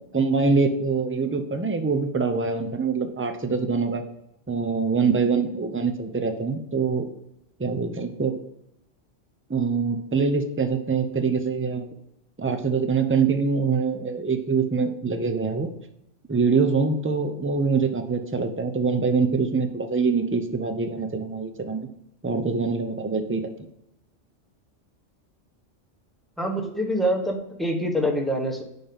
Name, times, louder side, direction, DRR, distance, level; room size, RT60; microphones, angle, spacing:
voice 1, 0.0-4.0 4.5-7.1 7.6-8.4 9.5-11.9 12.4-15.7 16.3-21.8 22.2-23.5, right 4 dB, 15° right, 7 dB, 0.5 m, -24 dB
voice 2, 26.4-28.6, equal, ahead, 1 dB, 1.0 m, -25 dB
5.9 x 5.4 x 6.9 m, 0.83 s
omnidirectional pair, 1.3 m